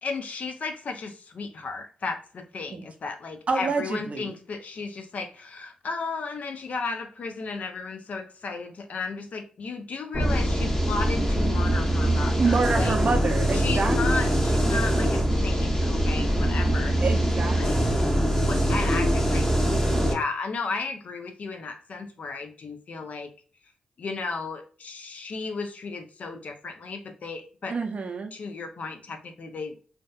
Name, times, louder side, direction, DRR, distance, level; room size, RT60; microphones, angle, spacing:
voice 1, 0.0-12.9 13.5-17.0 17.6-18.1 18.4-23.3 24.0-27.8 28.3-29.8, left 4 dB, 60° left, 6 dB, 0.5 m, -34 dB
voice 2, 3.5-4.4 12.4-14.3 17.0-18.1 27.7-28.3, right 4 dB, 50° right, 5 dB, 0.5 m, -28 dB
sound 1, 10.1-20.1, right 1 dB, 20° left, 0.8 m, -23 dB
2.6 x 2.2 x 2.2 m, 0.40 s
supercardioid pair, 50°, 3 cm